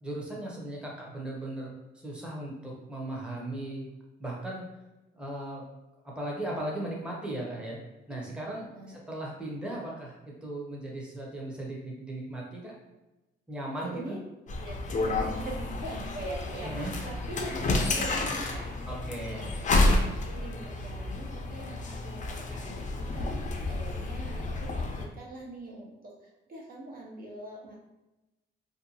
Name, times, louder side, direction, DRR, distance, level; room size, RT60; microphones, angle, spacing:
voice 1, 0.0-3.9 4.2-4.7 5.1-5.6 6.2-7.8 8.1-12.8 13.5-14.2 16.6-16.9 18.9-19.5, right 1 dB, 5° right, -3 dB, 0.7 m, -37 dB
voice 2, 13.8-14.2 14.6-18.7 19.3-19.7 20.2-27.8, right 1 dB, 50° right, -2 dB, 0.6 m, -42 dB
sound 1, 14.5-25.0, left 2 dB, 40° left, 0.5 m, -30 dB
2.6 x 2.2 x 2.6 m, 1.0 s
cardioid pair, 90°, 20 cm